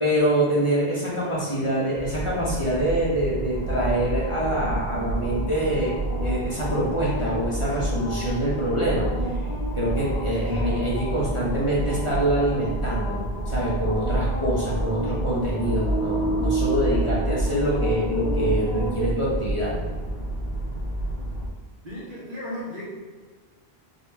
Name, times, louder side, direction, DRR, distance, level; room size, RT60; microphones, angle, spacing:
voice 1, 0.0-5.9 6.2-9.1 9.7-13.2 13.5-19.7, right 1 dB, 30° left, -7 dB, 0.9 m, -25 dB
voice 2, 1.2-1.8 21.8-22.8, left 1 dB, 60° right, -7 dB, 1.5 m, -36 dB
sound 1, 2.0-21.5, right 1 dB, 80° left, 1.3 m, -28 dB
3.8 x 2.8 x 3.4 m, 1.5 s
omnidirectional pair, 1.0 m